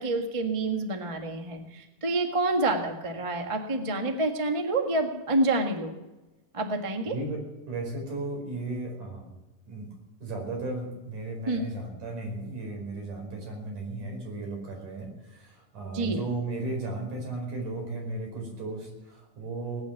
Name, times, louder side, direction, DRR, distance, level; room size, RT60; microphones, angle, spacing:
voice 1, 0.0-5.9 6.5-7.1 11.5-11.6 15.9-16.2, right 2 dB, 40° right, 3 dB, 0.4 m, -28 dB
voice 2, 7.1-7.4 7.7-9.3 9.7-9.9 10.2-19.8, right 2 dB, 75° right, 1 dB, 6.3 m, -35 dB
19.0 x 9.9 x 7.1 m, 1.1 s
omnidirectional pair, 3.7 m